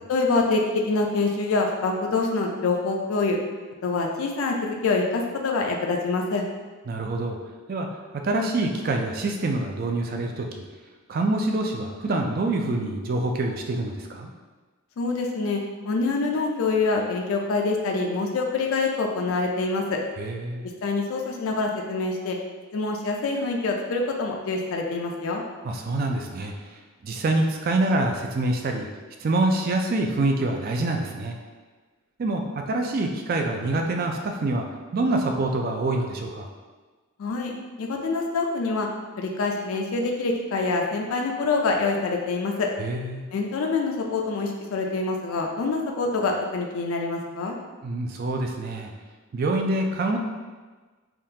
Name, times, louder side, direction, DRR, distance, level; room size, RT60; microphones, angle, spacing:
voice 1, 0.1-3.4 3.8-6.4 15.0-20.0 20.8-22.4 22.7-25.4 37.2-37.5 37.8-38.9 39.2-42.7 43.3-47.6, left 3 dB, 80° left, 1 dB, 0.4 m, -25 dB
voice 2, 6.9-7.4 7.7-7.9 8.2-10.5 11.1-14.3 20.2-20.6 25.6-26.5 27.0-28.9 29.2-31.4 32.2-32.4 32.7-34.7 34.9-36.5 42.8-43.3 47.8-48.9 49.3-50.2, right 2 dB, 45° right, 3 dB, 0.3 m, -25 dB
3.5 x 2.3 x 2.7 m, 1.3 s
head